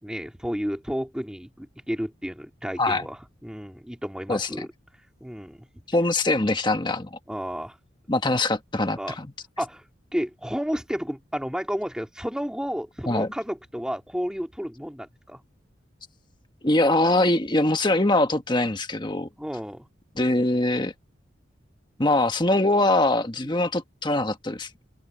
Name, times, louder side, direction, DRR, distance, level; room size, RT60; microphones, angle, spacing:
voice 1, 0.0-4.7 5.2-5.7 7.3-7.8 8.9-9.2 9.6-9.8 10.1-15.4 19.4-19.9 23.4-23.6, equal, 5° right, 2.6 m, -32 dB
voice 2, 4.3-4.7 5.9-7.2 8.1-9.3 13.1-13.3 16.6-19.3 20.1-20.9 22.0-24.7, left 2 dB, 25° left, 1.4 m, -23 dB
open air
head